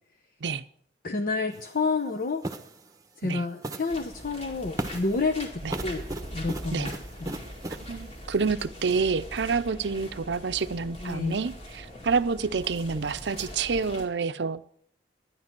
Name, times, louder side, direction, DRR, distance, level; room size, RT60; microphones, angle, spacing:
voice 1, 1.0-2.4 3.2-6.1 6.3-7.4 11.0-11.4, left 3 dB, 50° left, 0.8 m, -29 dB
sound 1, 1.5-1.7 2.4-2.8 3.6-4.0 4.8-5.2 5.7-7.9, right 1 dB, 20° right, 1.0 m, -36 dB
sound 2, 3.9-14.1, equal, 35° left, 2.3 m, -41 dB
voice 2, 7.9-14.7, right 5 dB, 80° right, 0.6 m, -28 dB
12.0 x 10.5 x 6.0 m
head